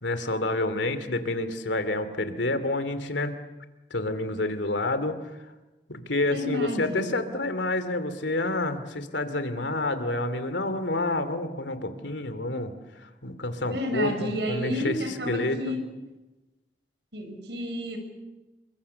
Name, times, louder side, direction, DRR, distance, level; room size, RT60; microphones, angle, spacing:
voice 1, 0.0-3.4 3.9-5.2 5.9-15.8, left 2 dB, 85° left, 10 dB, 2.7 m, -29 dB
voice 2, 6.3-7.2 13.7-15.8 17.1-18.0, equal, 75° right, 6 dB, 6.1 m, -31 dB
29.0 x 24.5 x 7.0 m, 1.1 s
head